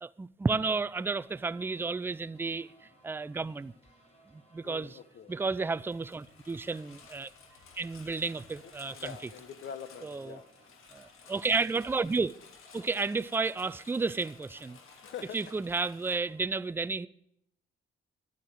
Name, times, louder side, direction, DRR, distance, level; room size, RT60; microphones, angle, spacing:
voice 1, 0.0-2.7 3.0-3.7 4.5-5.0 5.3-7.3 7.8-9.3 10.0-10.4 10.9-12.3 12.7-14.8 15.3-17.1, right 4 dB, 10° right, 0.3 m, -32 dB
sound 1, 1.0-16.4, right 1 dB, 30° left, 3.0 m, -63 dB
voice 2, 4.6-5.3 8.9-10.5 15.0-15.4, left 8 dB, 60° left, 1.1 m, -44 dB
Engine, 5.5-16.2, left 5 dB, 80° left, 1.9 m, -55 dB
11.0 x 8.6 x 6.4 m
cardioid pair, 125°, 21 cm